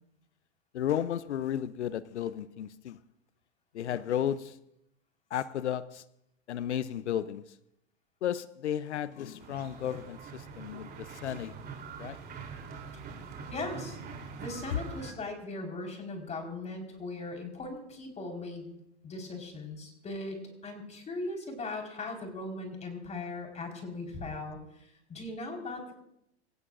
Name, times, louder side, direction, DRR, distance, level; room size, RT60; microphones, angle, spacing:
voice 1, 0.7-3.0 3.7-4.6 5.3-6.0 6.5-7.5 8.2-11.5 12.0-12.2, left 10 dB, 80° left, 15 dB, 0.7 m, -33 dB
sound 1, 9.4-15.1, right 5 dB, 30° right, 3.4 m, -44 dB
voice 2, 13.5-14.0 14.4-18.7 19.0-20.4 20.6-25.9, left 2 dB, 20° left, 2 dB, 4.7 m, -39 dB
27.0 x 15.5 x 2.6 m, 0.80 s
hypercardioid pair, 110°, 34 cm